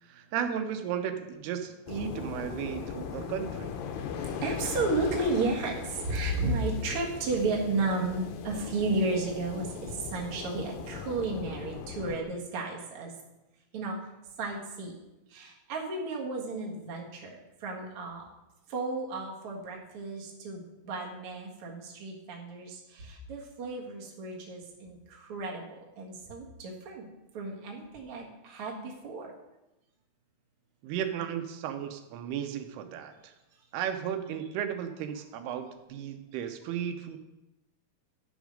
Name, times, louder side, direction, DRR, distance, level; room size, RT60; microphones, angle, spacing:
voice 1, 0.0-3.7 30.8-33.3 33.7-37.2, right 9 dB, 85° right, 7 dB, 2.7 m, -35 dB
sound 1, 1.9-12.2, left 7 dB, 75° left, 2.4 m, -39 dB
voice 2, 4.0-13.1 13.7-14.0 14.4-14.9 15.3-18.2 18.7-25.6 26.0-27.1 27.3-29.3, right 3 dB, 50° right, -2 dB, 1.8 m, -33 dB
10.5 x 6.2 x 5.1 m, 0.99 s
omnidirectional pair, 4.5 m